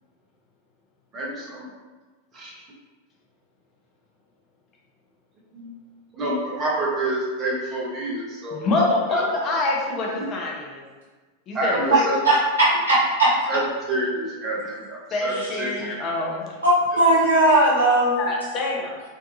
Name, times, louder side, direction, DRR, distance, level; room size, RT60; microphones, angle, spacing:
voice 1, 1.1-1.6 2.3-2.5 5.5-5.7 6.1-8.6 11.5-12.2 13.5-13.6 13.9-15.7 16.9-17.0, right 1 dB, 25° right, -5 dB, 0.8 m, -27 dB
voice 2, 8.5-10.8 11.5-12.1 15.1-16.6 17.2-17.3 18.2-19.0, left 2 dB, 35° left, -2 dB, 0.5 m, -26 dB
voice 3, 12.2-13.3 15.3-15.5 16.6-18.3, right 1 dB, 70° right, -8 dB, 1.0 m, -18 dB
2.6 x 2.3 x 2.6 m, 1.3 s
figure-of-eight pair, 90°, 0 cm